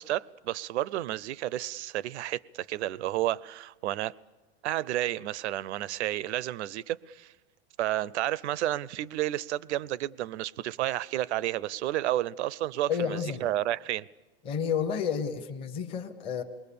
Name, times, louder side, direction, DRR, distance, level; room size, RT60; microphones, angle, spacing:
voice 1, 0.0-4.1 4.6-7.3 7.8-14.1, right 14 dB, 80° right, 0.7 m, -31 dB
voice 2, 12.9-13.5 14.4-16.4, left 7 dB, 15° left, 0.8 m, -30 dB
28.0 x 21.0 x 6.9 m
supercardioid pair, 175°, 33 cm